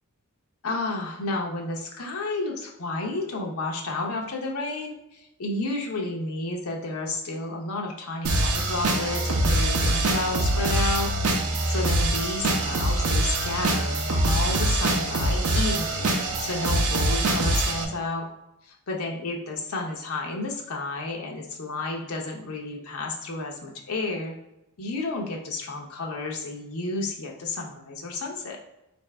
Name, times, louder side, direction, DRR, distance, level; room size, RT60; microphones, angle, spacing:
voice 1, 0.6-16.1 16.4-18.2 18.6-24.3 24.8-28.6, left 2 dB, 70° left, 0 dB, 0.7 m, -31 dB
sound 1, 8.2-17.8, right 1 dB, 85° right, 0.6 m, -24 dB
4.0 x 2.6 x 3.3 m, 0.90 s
head